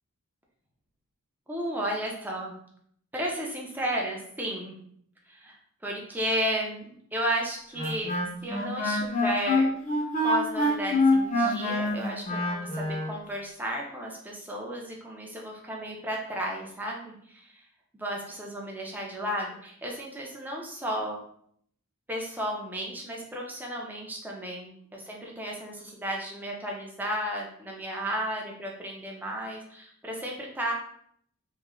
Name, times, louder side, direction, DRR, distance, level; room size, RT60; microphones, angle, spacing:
voice 1, 1.5-2.5 3.1-4.8 5.3-5.6 5.8-6.9 7.1-8.1 8.4-9.7 10.2-17.6 17.9-21.2 22.1-30.7, equal, 10° right, -2 dB, 0.5 m, -33 dB
Wind instrument woodwind instrument, 7.8-13.1, left 1 dB, 35° left, 0.7 m, -26 dB
3.1 x 2.1 x 3.6 m, 0.66 s
head